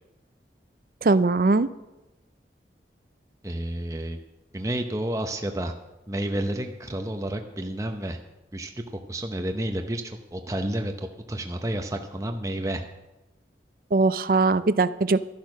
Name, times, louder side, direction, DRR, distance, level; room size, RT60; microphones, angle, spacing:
voice 1, 1.0-1.7 13.9-15.2, right 3 dB, 50° right, 15 dB, 0.5 m, -20 dB
voice 2, 3.4-4.2 4.5-5.7 6.1-8.2 8.5-8.7 9.1-12.8, right 1 dB, 20° right, 5 dB, 0.7 m, -30 dB
12.5 x 10.5 x 6.3 m, 1.0 s
head